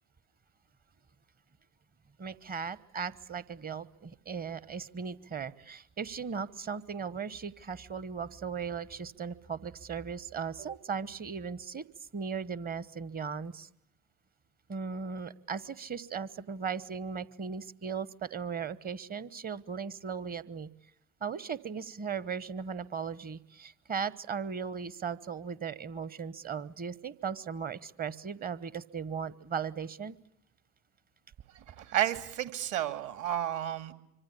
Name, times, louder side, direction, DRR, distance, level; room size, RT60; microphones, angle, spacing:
voice 1, 2.2-11.8 12.1-13.7 14.7-20.7 21.2-30.1, right 6 dB, 20° right, 18 dB, 1.1 m, -37 dB
voice 2, 31.7-33.9, right 12 dB, 40° right, 10 dB, 2.4 m, -31 dB
25.5 x 25.5 x 8.6 m, 0.80 s
hypercardioid pair, 85°, 44 cm